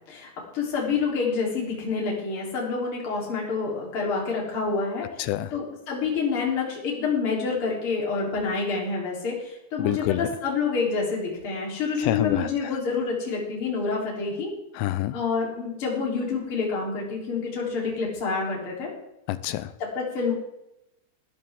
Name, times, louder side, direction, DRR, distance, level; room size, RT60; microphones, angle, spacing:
voice 1, 0.1-5.1 5.5-14.5 15.1-18.9 19.8-20.3, left 4 dB, 30° left, -3 dB, 4.0 m, -28 dB
voice 2, 5.2-5.5 9.8-10.3 12.0-12.5 14.8-15.1 19.3-19.7, left 15 dB, 80° left, 15 dB, 2.7 m, -27 dB
19.5 x 11.0 x 3.7 m, 0.86 s
omnidirectional pair, 5.2 m